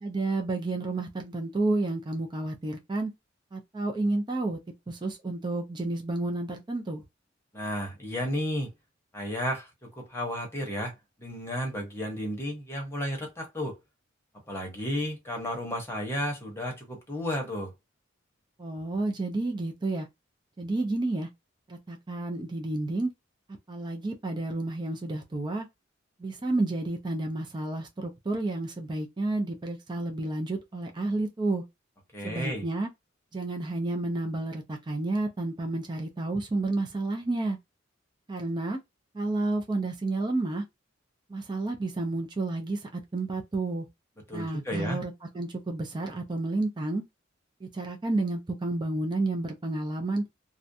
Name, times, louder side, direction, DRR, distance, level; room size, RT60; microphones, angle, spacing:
voice 1, 0.0-3.1 3.5-4.6 4.9-7.0 18.6-20.1 20.6-21.3 21.7-23.1 23.7-25.7 26.2-31.6 32.2-32.9 33.3-37.6 38.3-38.8 39.1-40.6 41.3-43.9 44.3-47.0 47.6-50.2, right 2 dB, 25° right, 0.4 m, -30 dB
voice 2, 7.5-8.7 9.1-10.9 11.2-13.8 14.5-17.7 32.1-32.6 44.3-45.0, equal, 15° left, 0.9 m, -33 dB
2.4 x 2.1 x 2.6 m
head